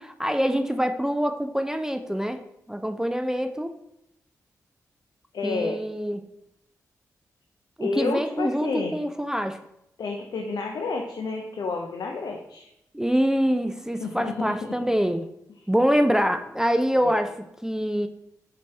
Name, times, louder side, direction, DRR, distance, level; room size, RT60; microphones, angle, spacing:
voice 1, 0.0-2.4 2.7-3.7 5.4-6.3 7.8-9.6 12.9-15.3 15.7-17.3 17.6-18.1, equal, 5° right, 7 dB, 0.4 m, -25 dB
voice 2, 5.3-5.8 7.8-8.9 10.0-12.7 14.0-14.8 17.0-17.2, left 4 dB, 70° left, 2 dB, 0.5 m, -30 dB
5.1 x 2.8 x 3.2 m, 0.81 s
supercardioid pair, 40°, 7 cm